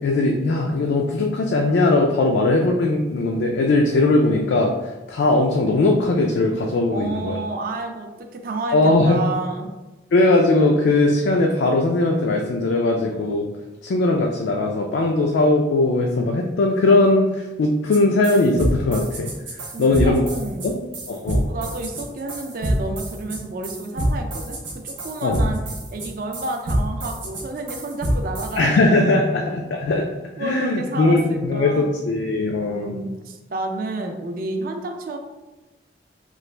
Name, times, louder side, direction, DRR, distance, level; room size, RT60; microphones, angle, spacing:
voice 1, 0.0-7.3 8.7-9.2 10.1-13.5 13.8-19.3 19.8-20.3 20.6-20.7 21.1-21.4 25.2-25.4 28.6-30.1 30.4-33.0, left 2 dB, 80° left, 1 dB, 0.3 m, -19 dB
voice 2, 6.8-9.7 19.7-20.7 21.5-25.6 25.9-28.8 29.1-29.2 30.4-31.9 32.6-35.2, right 2 dB, 50° right, 4 dB, 0.4 m, -30 dB
sound 1, 17.9-18.0 18.2-28.6, right 1 dB, 90° right, 0.8 m, -26 dB
3.0 x 2.4 x 3.2 m, 1.1 s
head